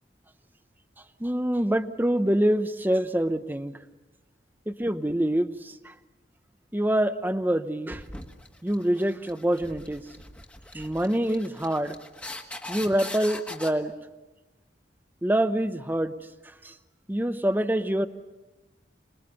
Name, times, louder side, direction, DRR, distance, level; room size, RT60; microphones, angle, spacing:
voice 1, 1.2-3.8 4.7-5.9 6.7-8.0 8.6-10.0 10.7-11.9 12.7-13.9 15.2-16.1 16.6-16.7 17.1-18.1, right 1 dB, 10° right, 11 dB, 0.7 m, -25 dB
sound 1, 7.9-13.7, left 1 dB, 5° left, 1.6 m, -41 dB
27.5 x 21.0 x 6.9 m, 1.1 s
head